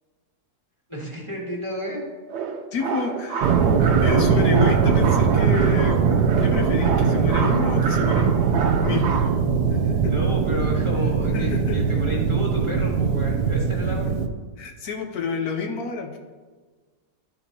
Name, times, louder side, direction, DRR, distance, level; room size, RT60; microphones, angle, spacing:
voice 1, 0.9-2.0 4.3-4.4 10.1-14.1, left 1 dB, 20° right, -4 dB, 1.2 m, -31 dB
sound 1, 2.3-9.3, right 5 dB, 65° right, 0.7 m, -29 dB
voice 2, 2.7-3.6 4.0-6.0 6.4-8.4 8.8-9.3 9.7-10.1 11.3-11.8 14.6-16.2, left 5 dB, 70° left, 3 dB, 1.1 m, -29 dB
sound 2, 3.4-14.3, right 6 dB, 85° right, 1.2 m, -21 dB
11.5 x 4.2 x 2.8 m, 1.4 s
omnidirectional pair, 1.7 m